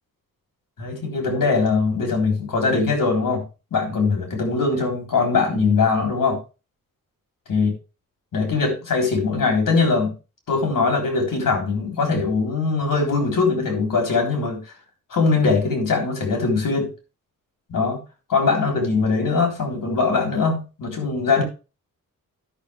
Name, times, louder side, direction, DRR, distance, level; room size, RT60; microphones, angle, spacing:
voice 1, 0.8-3.4 3.7-6.4 7.5-7.7 8.3-10.1 10.5-14.6 15.1-16.9 17.7-18.0 18.3-21.4, left 4 dB, 70° left, 2 dB, 3.8 m, -21 dB
12.0 x 6.5 x 3.5 m, 0.31 s
cardioid pair, 90°, 34 cm